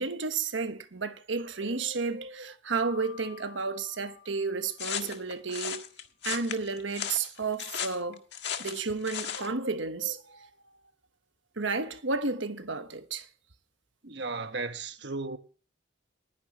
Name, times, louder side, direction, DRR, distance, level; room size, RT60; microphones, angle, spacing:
voice 1, 0.0-5.8 6.2-8.2 8.6-10.5 11.6-13.3, right 4 dB, 85° right, 1.3 m, -32 dB
Mallet percussion, 2.7-5.5, left 8 dB, 30° right, 2.6 m, -51 dB
sound 1, 4.8-9.5, left 8 dB, 60° left, 1.7 m, -36 dB
voice 2, 14.0-15.4, right 3 dB, 60° right, 1.3 m, -35 dB
20.0 x 9.9 x 3.1 m
head